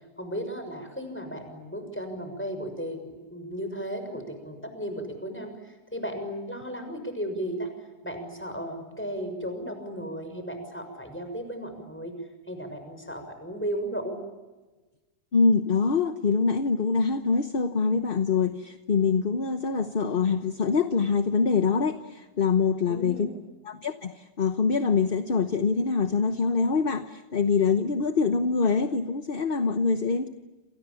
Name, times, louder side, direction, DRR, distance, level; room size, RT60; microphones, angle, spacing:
voice 1, 0.2-7.7 8.0-12.1 12.5-14.2 22.9-23.3, equal, 5° left, 7 dB, 6.5 m, -35 dB
voice 2, 15.3-23.3 23.6-30.3, left 5 dB, 40° left, 9 dB, 1.1 m, -24 dB
29.0 x 28.0 x 7.1 m, 1.2 s
omnidirectional pair, 1.8 m